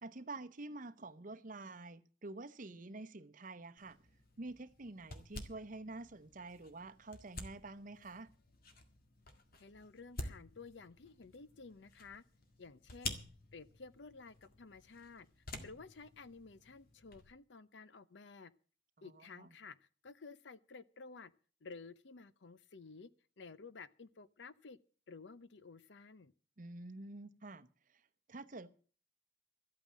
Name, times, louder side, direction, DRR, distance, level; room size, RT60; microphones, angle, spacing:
voice 1, 0.0-4.0 4.4-8.3 19.0-19.5 26.6-28.0 28.3-28.7, right 2 dB, 50° right, 0.9 m, -48 dB
sound 1, 3.8-17.3, left 2 dB, 55° left, 1.9 m, -51 dB
voice 2, 9.6-12.2 12.6-13.2 13.5-15.3 15.6-18.5 19.0-21.3 21.6-23.1 23.4-24.8 25.1-26.3, left 4 dB, 80° left, 0.7 m, -53 dB
13.5 x 8.8 x 7.4 m
head